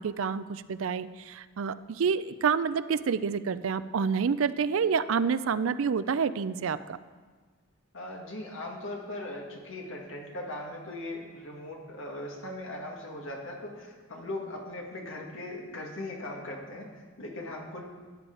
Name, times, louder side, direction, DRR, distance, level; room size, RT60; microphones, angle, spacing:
voice 1, 0.0-7.0, right 6 dB, 70° right, 14 dB, 0.4 m, -28 dB
voice 2, 7.9-17.8, left 1 dB, 65° left, -1 dB, 1.9 m, -39 dB
13.5 x 9.0 x 3.9 m, 1.5 s
head